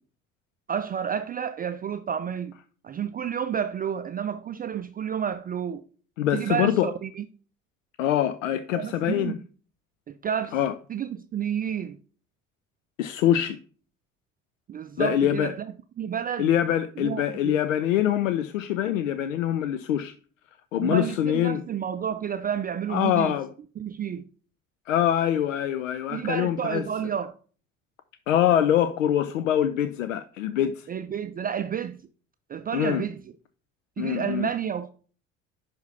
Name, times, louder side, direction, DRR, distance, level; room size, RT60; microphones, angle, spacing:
voice 1, 0.7-2.5 2.8-5.8 6.3-7.2 8.7-9.3 10.1-10.6 10.9-12.0 14.7-15.5 16.0-16.5 17.0-17.6 20.8-23.3 23.8-24.2 26.1-27.3 30.9-32.0 32.5-33.2 34.0-34.9, right 8 dB, 25° right, 0.4 m, -30 dB
voice 2, 6.2-6.9 8.0-9.4 10.5-10.8 13.0-13.6 15.0-15.5 16.4-20.2 20.7-21.6 22.9-23.5 24.9-26.9 28.3-30.9 32.7-33.0 34.0-34.5, left 11 dB, 70° left, 0.6 m, -24 dB
10.5 x 3.5 x 5.5 m
figure-of-eight pair, 55°, 40 cm